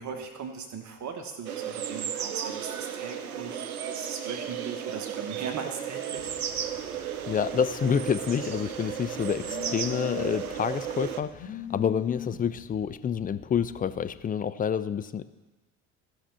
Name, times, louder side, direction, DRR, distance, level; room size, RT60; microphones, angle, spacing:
voice 1, 0.0-6.3, right 6 dB, 40° right, 5 dB, 1.3 m, -38 dB
sound 1, 1.5-11.2, right 9 dB, 90° right, 0.6 m, -34 dB
Telephone, 6.1-14.2, left 8 dB, 55° left, 1.9 m, -43 dB
voice 2, 7.3-15.2, left 7 dB, 20° left, 13 dB, 0.4 m, -28 dB
15.0 x 5.8 x 5.6 m, 1.2 s
figure-of-eight pair, 60°, 42 cm